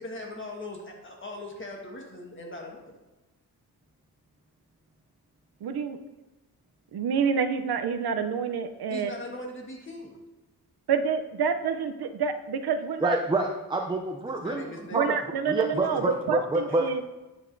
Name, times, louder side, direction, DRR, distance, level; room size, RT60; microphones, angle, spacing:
voice 1, 0.0-3.0 8.9-10.1 14.4-15.2, left 1 dB, 30° left, 0 dB, 1.4 m, -40 dB
voice 2, 5.6-6.0 6.9-9.1 10.9-13.2 14.9-17.0, right 6 dB, 75° right, 8 dB, 0.6 m, -28 dB
voice 3, 13.0-14.6 14.9-15.0 15.5-17.0, right 2 dB, 15° right, 2 dB, 0.4 m, -27 dB
9.3 x 6.4 x 2.6 m, 1.1 s
wide cardioid pair, 155°, 39 cm